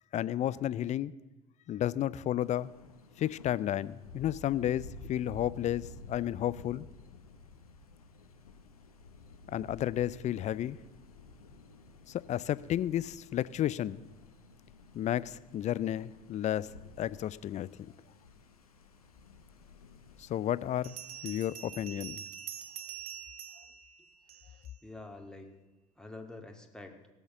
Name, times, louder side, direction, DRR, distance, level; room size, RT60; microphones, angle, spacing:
voice 1, 0.1-1.1 1.7-2.7 3.2-6.9 9.5-10.8 12.1-14.0 14.9-17.7 20.2-21.0 21.2-22.2, left 12 dB, 40° left, 0.5 m, -32 dB
Thunder, 2.4-21.6, left 3 dB, 90° left, 1.0 m, -52 dB
Bell, 19.6-19.7 20.8-24.7, right 9 dB, 75° right, 0.9 m, -45 dB
voice 2, 24.5-25.5 26.0-27.0, left 2 dB, 5° left, 2.0 m, -47 dB
17.0 x 7.2 x 6.8 m
figure-of-eight pair, 60°, 18 cm